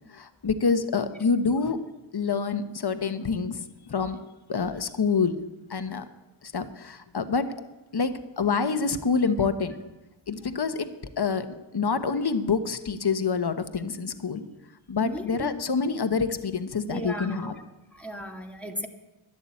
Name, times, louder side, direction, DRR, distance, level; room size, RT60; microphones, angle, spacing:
voice 1, 0.1-1.8 2.1-4.2 4.5-5.4 5.7-6.0 6.4-7.5 7.9-9.8 10.3-10.9 11.2-11.5 11.7-14.5 14.9-17.5, left 5 dB, 50° left, 9 dB, 1.1 m, -27 dB
voice 2, 15.0-15.6 16.9-17.6 17.9-18.9, left 1 dB, 5° left, 2 dB, 1.8 m, -36 dB
12.0 x 10.5 x 8.4 m, 1.0 s
wide cardioid pair, 45°, 50 cm